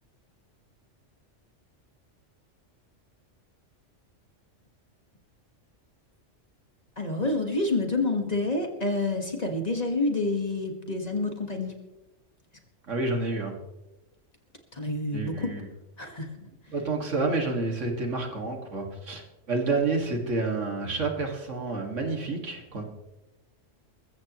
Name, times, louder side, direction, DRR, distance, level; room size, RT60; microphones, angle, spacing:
voice 1, 7.0-11.7 14.7-15.5 16.0-16.7, left 2 dB, 30° left, 3 dB, 1.8 m, -28 dB
voice 2, 12.9-13.5 15.1-15.7 16.7-19.2 19.5-22.8, right 3 dB, 70° right, 2 dB, 2.5 m, -29 dB
21.0 x 15.0 x 3.1 m, 1.0 s
omnidirectional pair, 1.3 m